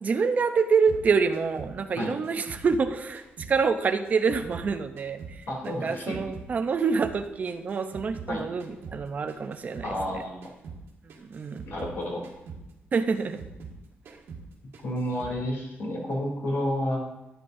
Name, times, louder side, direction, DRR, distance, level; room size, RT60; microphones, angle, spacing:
voice 1, 0.0-10.2 11.2-11.6 12.9-13.4 14.1-14.2, right 5 dB, 40° right, 8 dB, 0.6 m, -27 dB
sound 1, 0.9-3.6 3.8-6.5 6.8-10.2 10.4-10.8 11.1-13.8 14.1-14.5 14.7-15.4, right 5 dB, 80° right, 1.8 m, -44 dB
voice 2, 5.5-6.2 8.3-8.4 9.8-10.5 11.7-12.2 14.8-17.0, left 1 dB, 70° left, -1 dB, 3.0 m, -30 dB
13.5 x 9.3 x 2.6 m, 0.92 s
wide cardioid pair, 155°, 4 cm